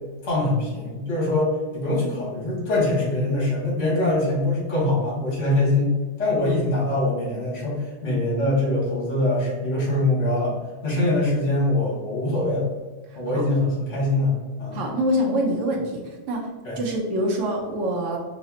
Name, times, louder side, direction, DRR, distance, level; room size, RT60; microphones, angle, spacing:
voice 1, 0.2-5.9 6.2-10.5 10.8-12.7 13.2-14.3 14.6-14.8 16.6-16.8, left 2 dB, 80° left, -5 dB, 1.7 m, -23 dB
voice 2, 14.7-16.4 16.8-18.2, equal, 85° right, -1 dB, 1.1 m, -25 dB
4.9 x 2.1 x 2.8 m, 1.3 s
omnidirectional pair, 1.2 m